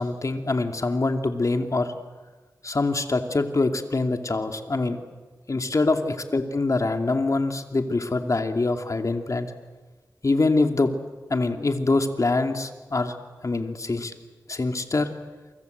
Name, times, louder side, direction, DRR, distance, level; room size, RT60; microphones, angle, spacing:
voice 1, 0.0-1.9 2.6-5.0 5.5-9.5 10.2-10.9 11.3-13.2 13.4-14.1 14.5-15.1, left 3 dB, 50° left, 5 dB, 2.5 m, -24 dB
29.0 x 25.0 x 8.1 m, 1.3 s
wide cardioid pair, 70°, 7 cm